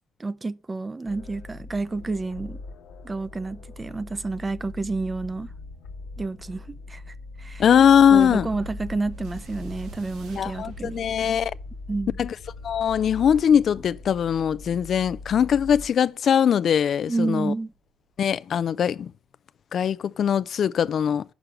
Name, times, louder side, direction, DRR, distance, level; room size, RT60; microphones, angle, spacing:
voice 1, 0.2-2.6 3.0-5.5 6.2-7.6 8.1-11.0 11.9-12.2 17.1-17.7, right 3 dB, 25° right, 0.5 m, -30 dB
sound 1, 1.1-15.9, left 3 dB, 85° left, 1.0 m, -41 dB
voice 2, 7.6-8.5 10.3-11.5 12.2-12.3 12.6-17.5 18.2-19.1 19.7-21.2, left 8 dB, 60° left, 0.3 m, -21 dB
sound 2, 8.2-17.0 17.7-17.8, right 3 dB, 90° right, 2.0 m, -49 dB
6.1 x 4.9 x 6.3 m
cardioid pair, 90°, 0 cm